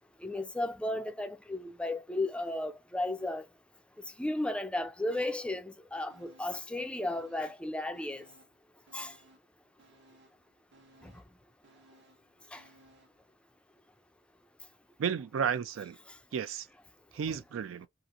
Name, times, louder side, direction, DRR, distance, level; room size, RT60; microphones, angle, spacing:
voice 1, 0.2-3.5 4.2-8.2 8.9-9.1 11.0-11.1 12.5-12.6 17.3-17.4, left 1 dB, 5° left, 0.3 m, -34 dB
sound 1, 6.1-6.8 7.0-8.6 8.9-13.2 13.6-13.7, right 1 dB, 60° right, 0.8 m, -62 dB
voice 2, 15.0-16.0 16.3-16.7 17.1-17.9, right 7 dB, 85° right, 0.4 m, -32 dB
2.8 x 2.5 x 2.4 m
head